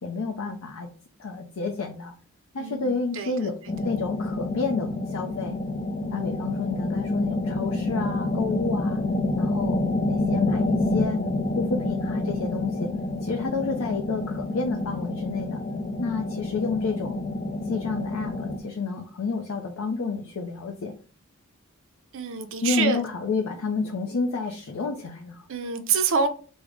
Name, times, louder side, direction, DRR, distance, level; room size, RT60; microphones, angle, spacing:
voice 1, 0.0-0.9 1.2-2.1 2.5-3.5 3.8-5.6 6.1-9.0 9.4-9.8 10.1-11.2 11.6-12.9 13.2-15.6 16.0-17.2 17.7-20.9 22.6-25.5, left 4 dB, 90° left, 0.5 m, -30 dB
voice 2, 2.6-3.5 22.1-23.0 25.5-26.3, right 5 dB, 65° right, 0.5 m, -26 dB
sound 1, 3.7-18.6, left 2 dB, 30° left, 0.5 m, -28 dB
3.4 x 2.1 x 3.6 m
head